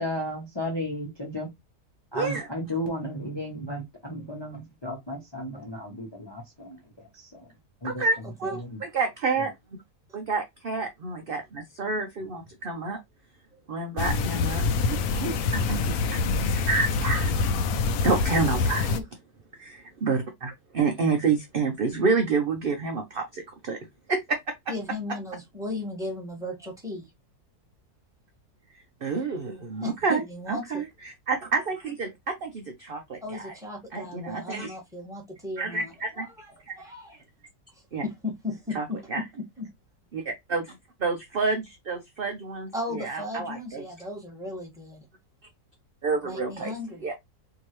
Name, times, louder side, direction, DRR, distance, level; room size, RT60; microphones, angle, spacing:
voice 1, 0.0-1.5 2.1-6.8 7.2-7.3 7.8-8.0 8.6-8.8, left 1 dB, 20° left, 0.9 m, -34 dB
voice 2, 2.1-2.5 7.8-9.5 10.1-13.0 13.7-14.6 14.9-17.3 18.0-18.9 19.6-23.8 24.1-24.4 29.0-30.2 30.5-33.5 33.9-34.8 35.6-36.3 37.9-38.0 38.7-38.8 39.1-39.2 40.1-40.2 40.5-40.7 41.0-43.8 46.0-46.7 47.0-47.2, right 4 dB, 50° right, 0.7 m, -29 dB
sound 1, 14.0-19.0, left 4 dB, 75° left, 1.0 m, -26 dB
voice 3, 24.7-27.1 29.8-30.8 33.2-37.2 38.0-39.7 42.7-45.0 46.2-47.0, left 2 dB, ahead, 1.5 m, -36 dB
4.5 x 2.8 x 3.1 m
omnidirectional pair, 1.7 m